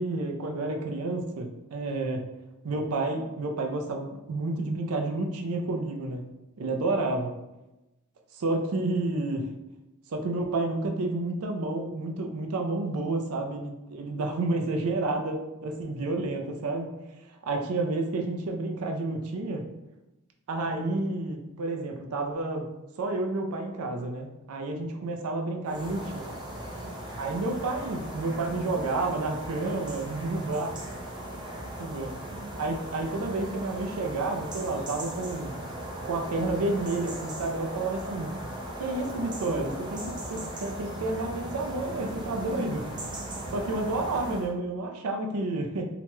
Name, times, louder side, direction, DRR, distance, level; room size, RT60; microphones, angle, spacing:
voice 1, 0.0-2.3 2.6-6.3 6.6-7.3 8.3-9.5 10.1-16.9 17.4-19.6 20.5-22.7 23.0-26.2 27.2-30.7 31.8-32.1 32.6-35.5 36.0-38.3 38.8-42.8 43.5-45.8, right 2 dB, 75° right, 3 dB, 0.4 m, -30 dB
sound 1, 25.7-44.5, right 1 dB, 20° right, 0.5 m, -38 dB
2.8 x 2.2 x 3.0 m, 1.0 s
head